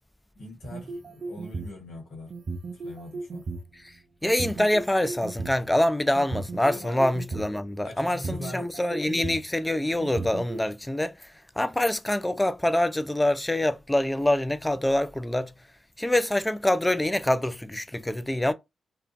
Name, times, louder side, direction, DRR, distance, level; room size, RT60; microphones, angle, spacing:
voice 1, 0.3-2.3 2.7-3.5 6.7-7.1 7.8-8.7, left 1 dB, 80° left, 1.0 m, -41 dB
sound 1, 0.6-1.8 2.3-3.6 4.2-5.5 6.2-7.5 8.1-9.5 10.0-10.6, right 3 dB, 60° right, 0.4 m, -35 dB
voice 2, 4.2-15.5 16.0-18.5, left 1 dB, 15° left, 0.4 m, -25 dB
2.4 x 2.2 x 2.5 m
supercardioid pair, 45°, 0 cm